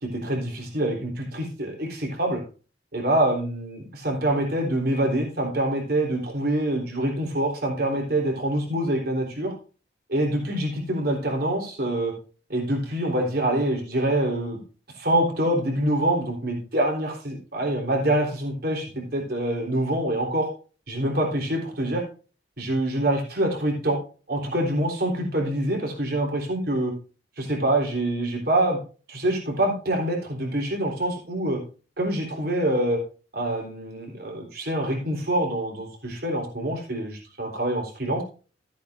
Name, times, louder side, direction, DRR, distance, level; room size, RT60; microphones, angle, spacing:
voice 1, 0.0-2.4 2.9-9.5 10.1-12.1 12.5-14.6 14.9-18.8 19.1-20.5 20.9-22.0 22.6-24.0 24.3-26.9 27.4-28.8 29.1-31.6 32.0-33.0 33.3-38.2, right 1 dB, 55° right, 1 dB, 3.8 m, -25 dB
15.0 x 8.4 x 2.7 m, 0.37 s
head